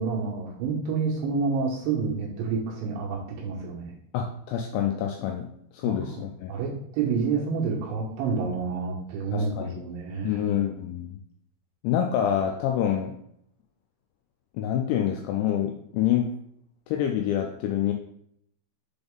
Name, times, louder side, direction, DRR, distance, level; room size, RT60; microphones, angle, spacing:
voice 1, 0.0-4.0 5.9-6.2 6.5-10.4, right 5 dB, 75° right, -2 dB, 2.8 m, -29 dB
voice 2, 4.1-5.5 5.7-6.5 9.3-9.8 10.2-11.2 11.8-13.1 14.5-16.3 16.9-17.9, left 10 dB, 85° left, 2 dB, 2.6 m, -27 dB
6.9 x 4.0 x 3.5 m, 0.70 s
omnidirectional pair, 5.6 m